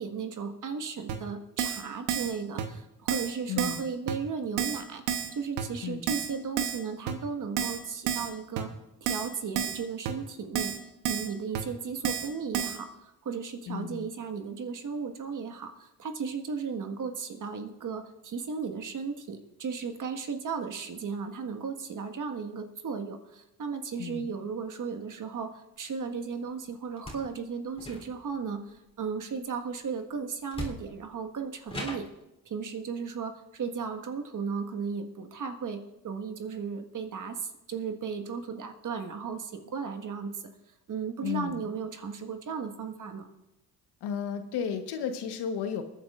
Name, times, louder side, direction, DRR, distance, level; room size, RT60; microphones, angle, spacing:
voice 1, 0.0-5.0 5.3-8.7 9.0-10.8 11.1-32.1 32.4-40.4 40.9-43.3, right 5 dB, 50° right, 6 dB, 1.7 m, -35 dB
Keyboard (musical), 1.1-1.2 1.6-1.8 2.1-2.3 2.6-2.7 3.1-3.3 3.6-3.8 4.1-4.2 4.6-4.8 5.1-5.3 5.6-5.7 6.1-6.3 6.6-6.8 7.1-7.2 7.6-7.8 8.1-8.3 8.6-8.7 9.1-9.3 9.6-9.8 10.0-10.1 10.5-10.8 11.0-11.3 11.5-11.6 12.0-12.3 12.5-12.8, right 8 dB, 90° right, 1.2 m, -30 dB
voice 2, 3.5-3.8 5.8-6.0 13.7-14.0 24.0-24.2 41.2-41.6 44.0-45.8, left 7 dB, 70° left, 7 dB, 1.3 m, -33 dB
sound 1, 26.9-27.3 27.7-28.4 30.0-30.1 30.5-31.1 31.7-32.2, left 1 dB, 15° left, 3.5 m, -39 dB
23.0 x 9.8 x 2.5 m, 0.92 s
supercardioid pair, 60°, 41 cm